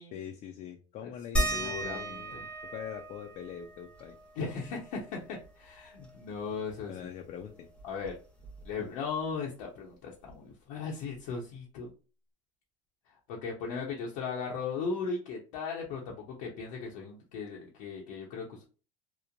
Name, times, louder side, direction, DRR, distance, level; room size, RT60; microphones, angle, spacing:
voice 1, 0.1-4.2 4.5-4.8 6.9-7.7, left 9 dB, 50° left, 3 dB, 0.4 m, -43 dB
voice 2, 1.3-2.4 4.4-6.9 7.8-8.1 8.6-11.9 13.3-18.6, left 5 dB, 80° left, -3 dB, 0.7 m, -37 dB
sound 1, 1.3-6.5 6.8-6.9 7.3-9.0 10.3-10.4 11.1-11.2, right 1 dB, 5° left, 0.7 m, -37 dB
3.0 x 2.1 x 2.5 m, 0.35 s
supercardioid pair, 110°, 16 cm